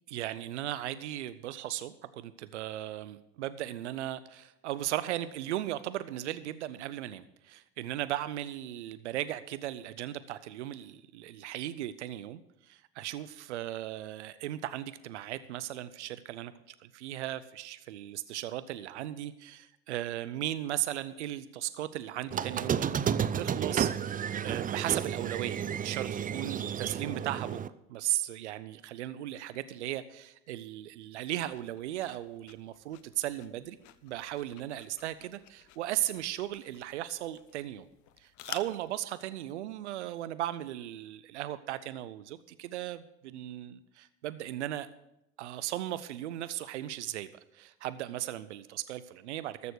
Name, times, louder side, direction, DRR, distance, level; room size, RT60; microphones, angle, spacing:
voice 1, 0.1-27.6 27.9-33.8 34.0-37.9 38.2-44.9 45.4-49.7, right 13 dB, 90° right, 15 dB, 0.6 m, -37 dB
Squeak, 22.3-27.7, right 8 dB, 25° right, 0.5 m, -32 dB
sound 1, 31.4-39.0, left 13 dB, 60° left, 0.8 m, -51 dB
13.5 x 6.8 x 6.4 m, 0.85 s
hypercardioid pair, 70°, 33 cm